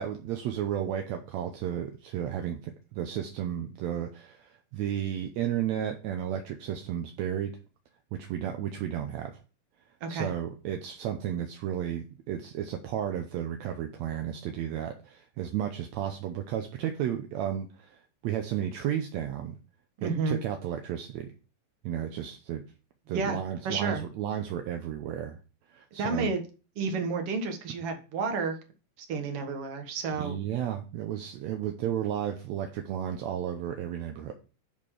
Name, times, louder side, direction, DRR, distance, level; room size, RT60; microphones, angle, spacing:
voice 1, 0.0-7.5 8.2-9.3 10.1-18.0 18.2-19.6 20.0-21.3 21.8-22.6 23.1-25.4 25.7-26.3 30.2-34.3, right 10 dB, 75° right, 5 dB, 2.0 m, -33 dB
voice 2, 10.0-10.3 20.0-20.4 23.1-23.4 23.6-24.0 26.0-26.4 26.8-28.6 29.0-30.4, right 4 dB, 55° right, 5 dB, 2.2 m, -30 dB
10.5 x 4.3 x 5.0 m, 0.35 s
omnidirectional pair, 3.3 m